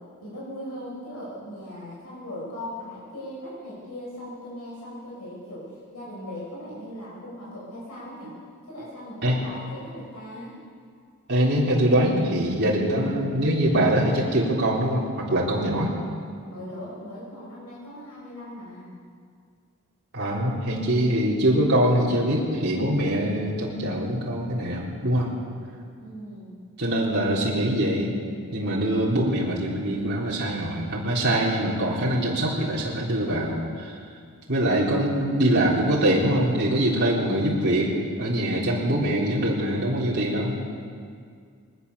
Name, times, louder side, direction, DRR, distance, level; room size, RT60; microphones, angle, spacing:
voice 1, 0.2-8.3 8.7-10.6 16.4-18.9 26.0-26.6, left 1 dB, 90° left, -5 dB, 6.1 m, -39 dB
voice 2, 11.3-15.9 20.1-25.3 26.8-28.1 28.5-34.0 34.5-40.6, right 1 dB, 50° right, -5 dB, 3.7 m, -23 dB
21.5 x 19.5 x 7.0 m, 2.1 s
head